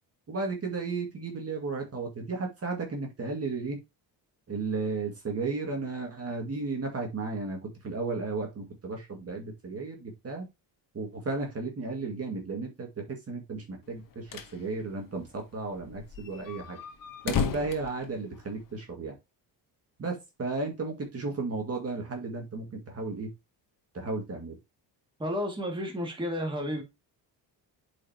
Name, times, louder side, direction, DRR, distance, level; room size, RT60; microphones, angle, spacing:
voice 1, 0.3-3.8 4.5-10.5 10.9-16.8 17.2-19.1 20.0-23.3 23.9-24.6, right 3 dB, 35° right, 2.2 m, -34 dB
sound 1, 13.9-14.6 14.9-15.0 15.2-15.3 15.8-18.8, left 6 dB, 50° left, 1.4 m, -34 dB
voice 2, 25.2-26.8, equal, 10° right, 2.2 m, -31 dB
8.3 x 5.2 x 2.9 m
cardioid pair, 125°, 43 cm